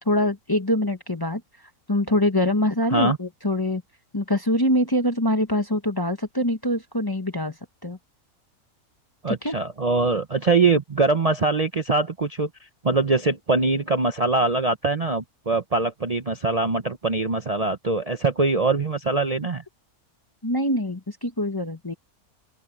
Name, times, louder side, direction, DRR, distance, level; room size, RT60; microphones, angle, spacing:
voice 1, 0.0-1.4 1.9-3.8 4.1-7.6 7.8-8.0 9.3-9.6 20.4-21.9, left 1 dB, 15° left, 1.0 m, -24 dB
voice 2, 9.2-12.5 12.8-19.6, right 3 dB, 35° right, 0.7 m, -23 dB
open air
omnidirectional pair, 1.5 m